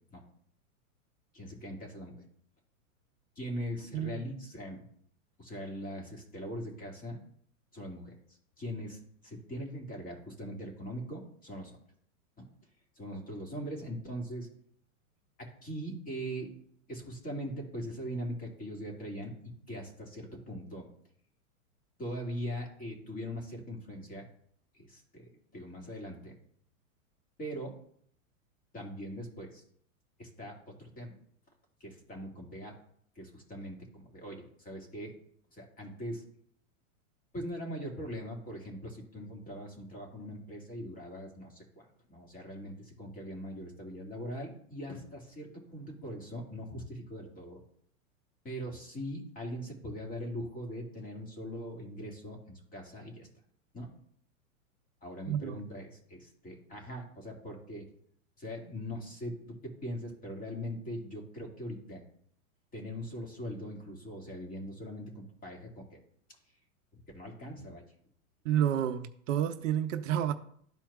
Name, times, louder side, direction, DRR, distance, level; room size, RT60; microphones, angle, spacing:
voice 1, 1.3-2.3 3.4-4.8 5.4-7.2 7.7-11.8 12.4-12.5 13.0-14.5 15.4-16.5 16.9-19.4 19.7-20.9 22.0-24.3 24.7-26.3 27.4-27.8 28.7-29.6 30.2-31.1 31.8-32.8 33.2-35.2 35.5-36.2 37.3-47.6 48.4-53.3 53.7-53.9 55.0-57.9 58.4-62.0 62.7-66.0 66.9-67.8, equal, 20° left, 2.2 m, -41 dB
voice 2, 55.3-55.6 68.4-70.3, right 10 dB, 65° right, 0.7 m, -30 dB
13.0 x 4.4 x 2.4 m
hypercardioid pair, 125°, 42 cm